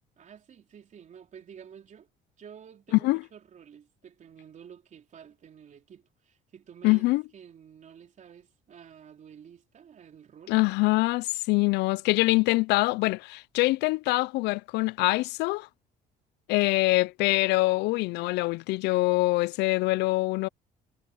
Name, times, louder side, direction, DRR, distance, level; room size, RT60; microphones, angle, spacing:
voice 1, 0.2-2.1 2.4-10.6, right 8 dB, 45° right, 3.7 m, -50 dB
voice 2, 6.8-7.2 10.5-15.7 16.5-20.5, left 22 dB, 85° left, 0.4 m, -24 dB
cardioid pair, 110°, 17 cm